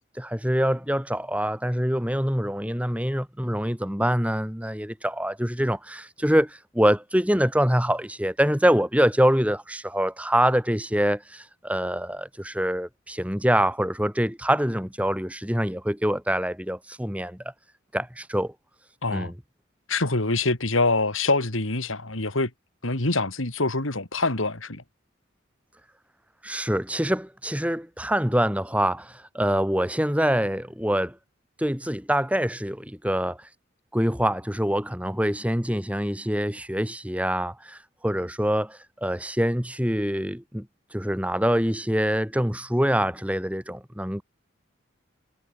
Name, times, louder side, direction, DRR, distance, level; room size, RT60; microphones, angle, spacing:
voice 1, 0.2-17.4 17.9-18.5 19.1-19.3 26.4-31.2 31.6-33.5 33.9-40.7 40.9-44.2, equal, 5° right, 3.7 m, -25 dB
voice 2, 19.9-22.5 22.8-24.8, left 3 dB, 80° left, 3.2 m, -25 dB
head